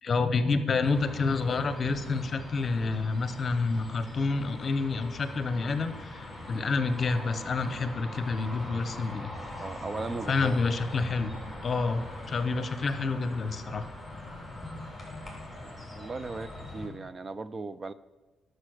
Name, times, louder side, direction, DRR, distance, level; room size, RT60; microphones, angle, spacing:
voice 1, 0.0-9.3 10.3-11.3 11.6-13.9, left 4 dB, 45° left, 11 dB, 0.9 m, -28 dB
sound 1, 0.8-16.9, left 1 dB, ahead, 3.6 m, -41 dB
voice 2, 9.6-10.6 15.1-15.2 15.6-17.9, right 3 dB, 35° right, 16 dB, 0.5 m, -38 dB
11.5 x 6.6 x 6.5 m, 1.2 s
cardioid pair, 90°, 0 cm